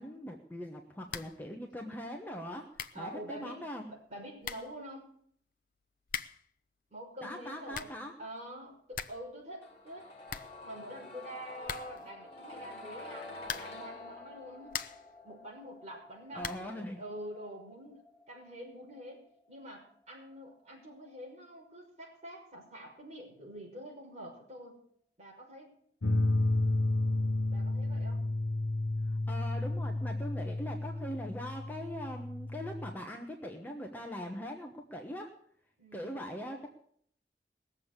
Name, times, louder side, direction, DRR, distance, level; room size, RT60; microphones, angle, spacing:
voice 1, 0.0-3.9 7.2-8.1 16.3-17.0 29.3-35.3 35.9-36.7, equal, 10° left, 1 dB, 1.1 m, -41 dB
sound 1, 1.1-1.5 1.7-1.8 2.4-2.5 2.7-3.1 4.0-4.1 4.4-4.8 6.0-6.5 7.5-8.1 8.4-8.5 8.7-9.3 9.6-9.7 9.9-10.0 10.3-11.1 11.6-12.1 13.4-13.9 14.4-15.1 16.4-16.8, left 7 dB, 50° left, 0.6 m, -41 dB
voice 2, 2.9-3.6 3.9-5.1 6.9-7.9 8.2-10.1 10.6-14.8 15.2-18.0 18.3-19.2 19.5-24.8 25.2-25.7 27.5-28.2 35.8-36.2, equal, 40° right, -2 dB, 5.7 m, -46 dB
sound 2, 9.6-21.4 21.7-21.8, left 2 dB, 35° left, 2.7 m, -50 dB
sound 3, 26.0-32.9, left 2 dB, 90° left, 1.0 m, -31 dB
19.0 x 7.4 x 8.1 m, 0.65 s
head